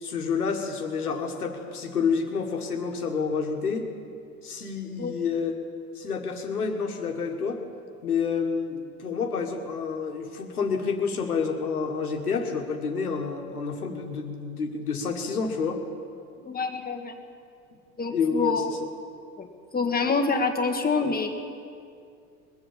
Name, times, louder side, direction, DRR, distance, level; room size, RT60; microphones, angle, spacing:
voice 1, 0.0-3.9 4.4-5.5 6.0-7.6 8.0-15.8 18.1-18.9, left 5 dB, 85° left, 3 dB, 1.7 m, -29 dB
voice 2, 16.4-17.2 18.0-18.8 19.4-19.5 19.7-21.4, left 4 dB, 20° left, 4 dB, 1.8 m, -26 dB
21.0 x 7.9 x 8.6 m, 2.4 s
figure-of-eight pair, 70°, 44 cm